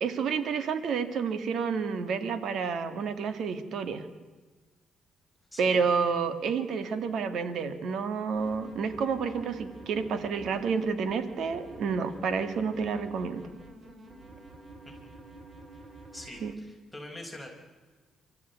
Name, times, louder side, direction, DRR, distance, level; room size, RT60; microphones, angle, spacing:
voice 1, 0.0-4.1 5.6-13.4 16.4-16.5, right 5 dB, 70° right, 11 dB, 2.0 m, -29 dB
voice 2, 5.5-5.8 14.8-15.0 15.7-15.8 16.1-17.5, left 1 dB, 5° left, 0 dB, 4.9 m, -44 dB
sound 1, 8.4-16.5, right 2 dB, 40° right, 3.3 m, -49 dB
25.5 x 14.0 x 9.4 m, 1.4 s
cardioid pair, 90°, 0 cm